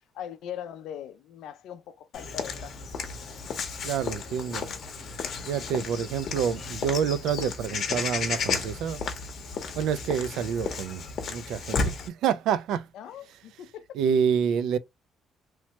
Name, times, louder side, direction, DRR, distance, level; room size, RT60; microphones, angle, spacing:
voice 1, 0.1-2.8 3.1-3.2 12.9-14.0, left 9 dB, 80° left, 0.4 m, -40 dB
Walk footsteps / Bird vocalization bird call bird song, 2.1-12.1, left 5 dB, 55° left, 0.7 m, -33 dB
voice 2, 3.8-4.7 5.5-9.0 9.8-11.0 11.3-12.9 14.0-14.8, right 7 dB, 85° right, 0.3 m, -27 dB
3.1 x 2.1 x 2.7 m
cardioid pair, 130°, 0 cm